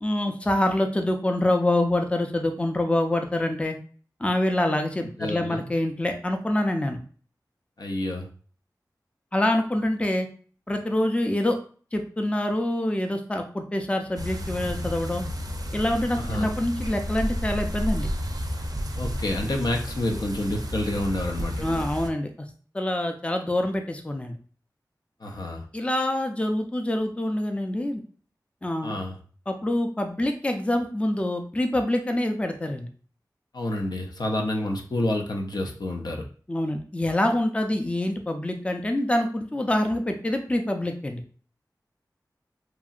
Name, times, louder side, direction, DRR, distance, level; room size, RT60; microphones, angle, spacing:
voice 1, 0.0-3.8 4.2-7.0 9.3-10.3 10.7-11.6 11.9-15.2 15.7-18.1 21.6-22.3 22.7-24.4 25.7-28.0 28.6-28.9 29.5-32.9 36.5-41.2, left 1 dB, 15° left, 4 dB, 0.4 m, -26 dB
voice 2, 5.2-5.6 7.8-8.3 16.1-16.5 19.0-21.8 25.2-25.7 28.8-29.2 33.5-36.3, left 1 dB, 70° left, 2 dB, 0.5 m, -29 dB
sound 1, 14.2-22.1, equal, 60° right, 0.4 m, -31 dB
2.9 x 2.6 x 2.4 m, 0.41 s
wide cardioid pair, 45°, 7 cm